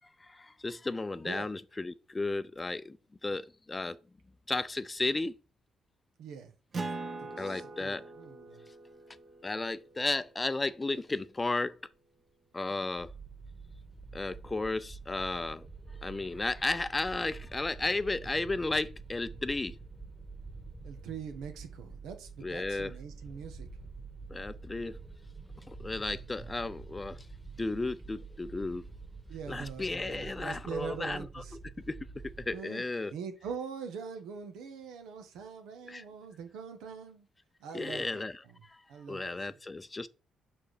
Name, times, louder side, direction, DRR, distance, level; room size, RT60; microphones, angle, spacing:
voice 1, 0.2-3.0 3.2-4.0 4.5-5.3 7.4-8.0 9.4-11.8 12.5-13.1 14.1-15.6 16.0-19.8 22.4-22.9 24.3-25.0 25.7-27.3 27.6-28.8 29.5-31.4 31.9-32.0 32.4-33.1 35.9-36.0 37.7-38.8 39.1-40.1, left 2 dB, 20° left, 0.5 m, -34 dB
voice 2, 6.2-6.5 7.2-8.6 20.8-23.7 29.3-31.6 32.5-32.8 33.1-37.3 37.6-38.2 38.9-39.4, right 6 dB, 90° right, 1.4 m, -43 dB
Acoustic guitar, 6.7-11.7, right 3 dB, 40° right, 1.3 m, -43 dB
sound 1, 13.0-32.6, right 4 dB, 10° right, 1.6 m, -47 dB
6.0 x 4.6 x 4.9 m
cardioid pair, 90°, 0 cm